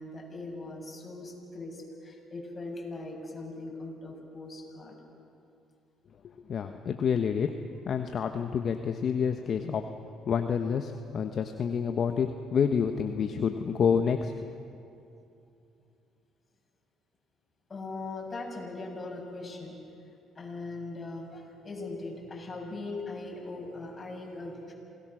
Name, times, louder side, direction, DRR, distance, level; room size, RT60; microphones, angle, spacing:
voice 1, 0.0-5.0 17.7-19.8 20.4-24.7, left 2 dB, 30° left, -1 dB, 7.4 m, -40 dB
voice 2, 6.2-7.5 7.8-9.8 10.3-14.5, left 7 dB, 55° left, 6 dB, 1.0 m, -28 dB
27.5 x 19.0 x 6.3 m, 2.6 s
supercardioid pair, 75°, 0 cm